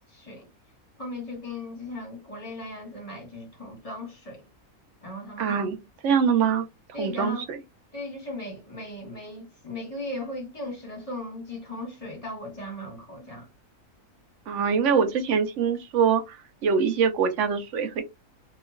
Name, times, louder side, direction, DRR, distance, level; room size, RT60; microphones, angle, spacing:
voice 1, 0.1-0.5 1.0-4.4 5.0-5.7 6.9-7.5 7.9-13.5, left 2 dB, 25° left, 1.0 m, -37 dB
voice 2, 5.4-5.8 6.0-6.7 7.0-7.6 14.5-16.4 16.6-18.0, right 6 dB, 65° right, 0.8 m, -23 dB
2.9 x 2.4 x 2.3 m
omnidirectional pair, 1.5 m